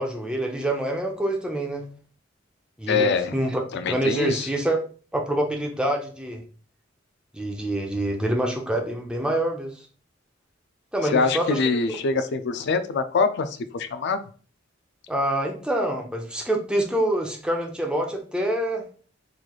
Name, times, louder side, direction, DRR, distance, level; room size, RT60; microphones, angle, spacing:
voice 1, 0.0-1.8 2.8-4.8 5.1-6.4 7.3-9.8 10.9-11.6 11.9-12.0 15.1-18.8, right 1 dB, 5° right, 1 dB, 0.6 m, -26 dB
voice 2, 2.9-3.3 3.7-4.5 11.0-14.2, left 4 dB, 60° left, 9 dB, 0.4 m, -24 dB
3.8 x 3.2 x 2.4 m, 0.40 s
head